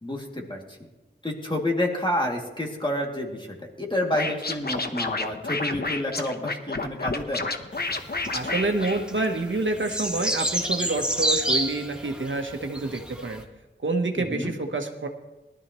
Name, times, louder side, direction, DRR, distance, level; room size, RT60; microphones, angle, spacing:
voice 1, 0.0-0.8 1.2-7.4 14.2-14.5, left 1 dB, 25° left, -1 dB, 2.5 m, -29 dB
Scratching (performance technique), 4.1-9.6, left 3 dB, 55° left, 1.0 m, -30 dB
sound 1, 7.7-13.4, right 1 dB, 5° right, 1.5 m, -29 dB
voice 2, 8.3-13.4 13.8-15.1, right 2 dB, 75° right, 5 dB, 1.1 m, -27 dB
19.0 x 12.5 x 3.1 m, 1.0 s
wide cardioid pair, 65°, 20 cm